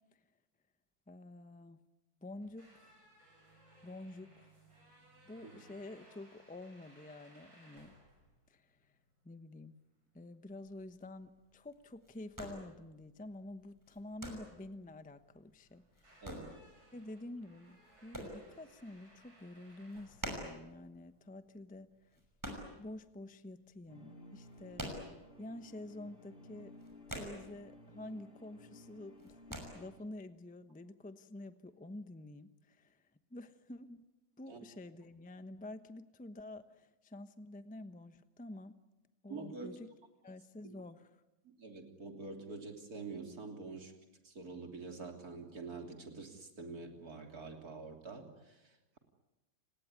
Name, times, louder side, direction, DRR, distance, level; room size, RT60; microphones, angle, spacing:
voice 1, 1.1-1.8 2.2-2.9 3.8-4.5 5.2-7.9 8.5-8.9 9.2-9.8 10.1-16.3 16.9-22.2 22.8-24.9 25.4-26.7 27.1-29.4 29.7-34.0 34.4-38.7 39.2-39.9 40.2-41.2, left 2 dB, 10° left, 11 dB, 0.5 m, -49 dB
sound 1, 2.3-21.2, right 1 dB, 80° right, 7.6 m, -64 dB
sound 2, 10.5-23.5 23.7-25.7 25.9-26.1 26.4-28.0 28.2-28.7 29.0-29.6, equal, 10° right, 5.9 m, -47 dB
voice 2, 16.2-16.5 34.5-34.6 39.3-39.8 41.6-43.9 44.2-49.0, right 3 dB, 50° right, 4 dB, 3.6 m, -46 dB
sound 3, 23.9-30.0, left 1 dB, 25° left, 3.5 m, -56 dB
30.0 x 19.5 x 9.7 m, 1.0 s
omnidirectional pair, 2.1 m